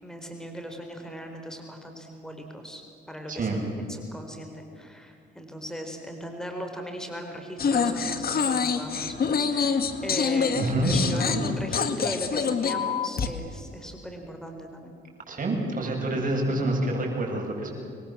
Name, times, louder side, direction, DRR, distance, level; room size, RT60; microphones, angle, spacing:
voice 1, 0.0-14.9, equal, 5° left, 3 dB, 4.4 m, -38 dB
voice 2, 3.3-3.6 10.5-11.4 15.3-17.7, right 1 dB, 40° right, 0 dB, 7.9 m, -27 dB
sound 1, 7.6-13.3, left 6 dB, 50° left, 2.0 m, -26 dB
26.5 x 22.0 x 7.7 m, 2.5 s
cardioid pair, 90°, 20 cm